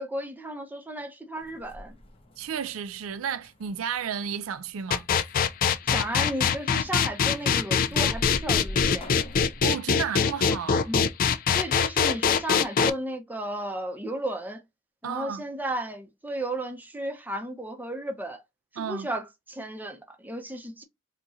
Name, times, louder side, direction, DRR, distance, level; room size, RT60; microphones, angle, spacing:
voice 1, 0.0-2.0 5.9-9.2 10.9-11.1 11.3-14.6 15.0-18.4 18.7-20.8, right 1 dB, 10° right, 0.6 m, -34 dB
sound 1, 1.4-9.6, left 1 dB, 25° left, 0.8 m, -43 dB
voice 2, 2.4-5.1 9.6-10.9 15.0-15.4 18.8-19.1, right 7 dB, 70° right, 0.4 m, -32 dB
sound 2, 4.9-12.9, left 6 dB, 40° left, 0.3 m, -22 dB
3.8 x 2.9 x 2.5 m
head